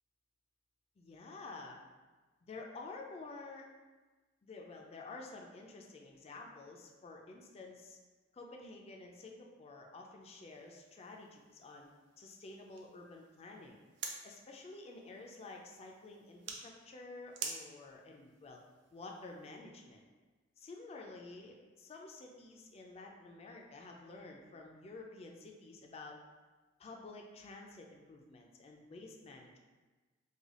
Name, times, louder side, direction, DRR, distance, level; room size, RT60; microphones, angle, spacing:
voice 1, 1.0-1.8 2.5-3.7 4.4-8.0 8.3-11.9 12.2-13.8 14.2-18.6 18.9-20.0 20.6-26.2 26.8-29.6, left 3 dB, 30° left, 1 dB, 0.3 m, -50 dB
sound 1, 10.2-19.6, right 5 dB, 65° right, 0.4 m, -50 dB
3.2 x 2.3 x 3.6 m, 1.3 s
head